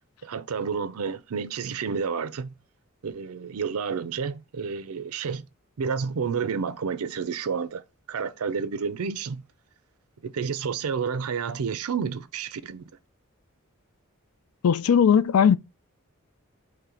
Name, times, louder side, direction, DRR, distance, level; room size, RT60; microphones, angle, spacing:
voice 1, 0.2-2.5 3.0-5.5 5.8-9.4 10.2-12.8, right 6 dB, 85° right, 0.5 m, -30 dB
voice 2, 14.6-15.6, left 7 dB, 80° left, 0.4 m, -18 dB
3.8 x 3.2 x 4.3 m
head